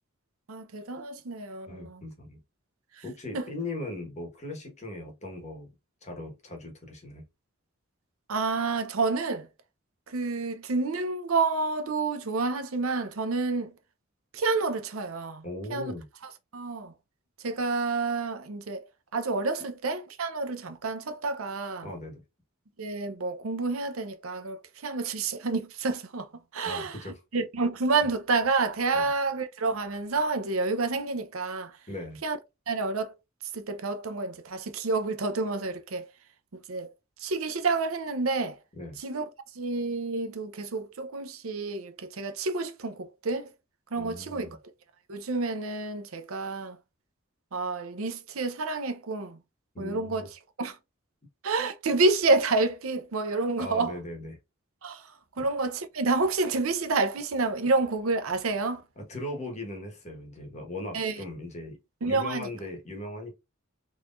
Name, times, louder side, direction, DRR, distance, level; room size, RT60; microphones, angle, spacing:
voice 1, 0.5-2.0 3.3-3.5 8.3-9.5 10.1-13.7 14.3-15.4 15.7-15.9 16.5-16.9 17.4-18.8 19.1-21.9 22.8-26.3 26.5-27.0 27.3-31.7 32.2-32.4 32.7-33.1 33.5-36.0 36.5-36.9 37.2-38.6 39.0-39.2 39.6-43.5 43.9-44.5 45.1-46.8 47.5-49.4 49.8-50.3 50.6-50.8 51.4-53.9 54.8-55.0 55.4-58.8 60.9-61.2 62.0-62.5, right 3 dB, 85° right, 0.7 m, -29 dB
voice 2, 1.7-2.4 3.0-5.7 6.0-7.2 15.4-16.1 21.8-22.2 26.6-27.2 28.9-29.1 31.9-32.2 38.8-39.0 44.0-44.6 49.7-50.3 53.6-54.4 59.0-61.8 62.1-63.3, left 1 dB, 35° left, 1.3 m, -38 dB
3.9 x 3.1 x 2.5 m
head